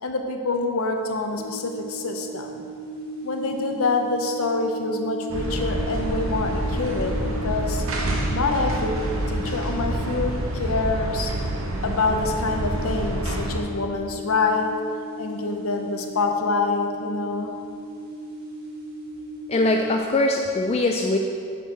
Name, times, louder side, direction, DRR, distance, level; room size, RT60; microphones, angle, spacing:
voice 1, 0.0-2.6 3.2-7.8 8.3-11.3 11.8-14.8 15.2-17.6, left 3 dB, 75° left, 4 dB, 0.8 m, -26 dB
sound 1, 1.3-20.0, left 1 dB, 45° right, 1.6 m, -37 dB
sound 2, 5.3-13.6, right 1 dB, 65° right, 0.9 m, -27 dB
voice 2, 19.5-21.2, left 2 dB, 30° left, 2 dB, 0.3 m, -22 dB
7.7 x 4.5 x 6.2 m, 2.3 s
head